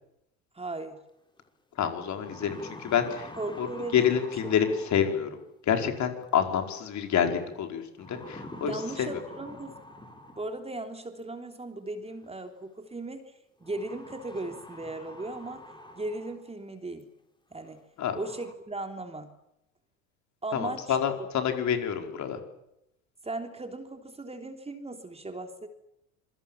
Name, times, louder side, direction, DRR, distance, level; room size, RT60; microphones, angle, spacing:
voice 1, 0.5-1.0 3.4-4.2 8.6-9.8 10.4-13.3 13.6-15.6 15.9-17.1 17.5-17.8 18.1-19.3 20.4-21.0 23.2-25.7, right 2 dB, 15° right, 6 dB, 3.4 m, -37 dB
sound 1, 1.4-1.5 2.0-5.4 6.8-7.2 8.0-10.8 12.0-12.1 13.6-16.5 17.0-17.1 17.6-17.7 18.0-18.5, left 1 dB, 10° left, 4.7 m, -46 dB
voice 2, 1.8-3.3 3.6-3.7 3.9-5.4 5.7-9.2 18.0-18.1 20.5-22.4, left 8 dB, 45° left, 5 dB, 5.0 m, -28 dB
27.0 x 23.5 x 7.4 m, 0.83 s
hypercardioid pair, 75°, 41 cm